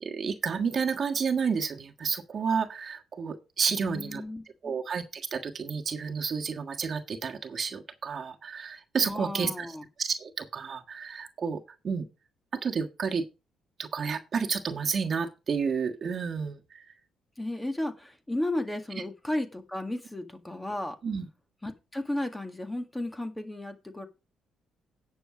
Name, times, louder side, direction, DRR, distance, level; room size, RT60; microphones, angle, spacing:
voice 1, 0.0-4.2 4.6-9.7 10.0-12.0 12.6-13.2 13.8-16.8 21.0-21.3, right 6 dB, 50° right, 1.5 m, -31 dB
voice 2, 3.7-4.8 9.0-9.9 17.4-21.0 21.6-24.1, left 1 dB, 10° left, 1.9 m, -34 dB
10.0 x 7.1 x 4.9 m
cardioid pair, 90°, 0 cm